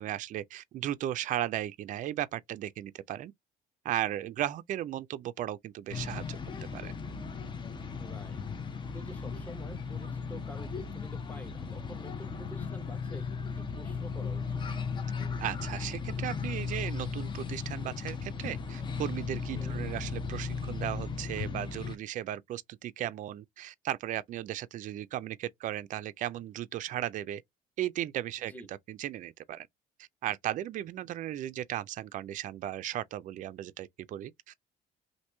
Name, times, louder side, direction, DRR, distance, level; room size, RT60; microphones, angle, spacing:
voice 1, 0.0-3.3 3.8-6.4 6.7-6.9 15.4-27.4 27.8-29.7 30.0-34.8, right 12 dB, 50° right, 0.4 m, -36 dB
sound 1, 5.9-22.0, left 5 dB, 30° left, 0.5 m, -36 dB
voice 2, 8.0-8.5 8.9-14.6 19.5-19.8 28.5-28.7, equal, 10° left, 0.9 m, -48 dB
2.9 x 2.6 x 3.3 m
cardioid pair, 110°, 17 cm